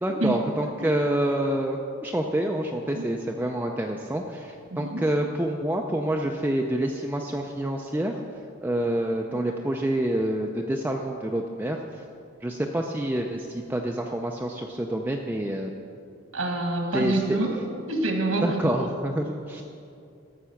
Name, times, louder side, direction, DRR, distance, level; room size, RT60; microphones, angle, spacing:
voice 1, 0.0-8.2 8.6-11.8 12.4-15.7 16.9-17.4 18.4-19.6, right 1 dB, 10° right, 1 dB, 0.4 m, -27 dB
voice 2, 4.7-5.0 16.3-17.6 17.9-18.7, right 2 dB, 75° right, 3 dB, 1.5 m, -26 dB
12.5 x 7.2 x 5.8 m, 2.5 s
head